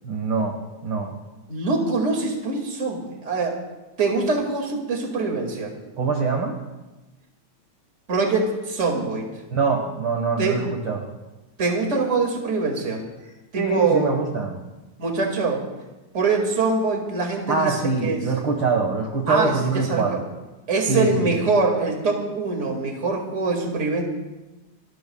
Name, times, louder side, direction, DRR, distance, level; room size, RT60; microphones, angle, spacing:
voice 1, 0.0-1.2 6.0-6.6 9.5-11.0 13.6-14.6 17.5-20.2 20.9-21.4, right 4 dB, 45° right, 1 dB, 2.0 m, -24 dB
voice 2, 1.5-3.6 4.0-5.7 8.1-9.3 10.4-10.6 11.6-13.0 13.5-14.1 15.0-15.7 16.1-18.2 19.3-20.2 20.7-24.0, right 3 dB, 25° right, 1 dB, 2.2 m, -23 dB
30.0 x 14.0 x 2.4 m, 1.1 s
omnidirectional pair, 3.4 m